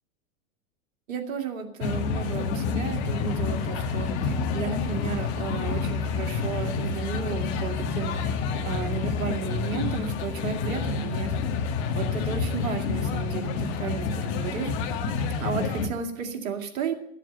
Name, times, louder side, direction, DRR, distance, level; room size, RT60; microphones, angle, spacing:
voice 1, 1.1-8.4 8.6-11.3 11.9-14.7 15.4-16.9, right 6 dB, 80° right, 4 dB, 2.4 m, -33 dB
sound 1, 1.8-15.9, left 5 dB, 55° left, 1.7 m, -28 dB
14.0 x 7.5 x 7.9 m, 0.72 s
hypercardioid pair, 115°, 40 cm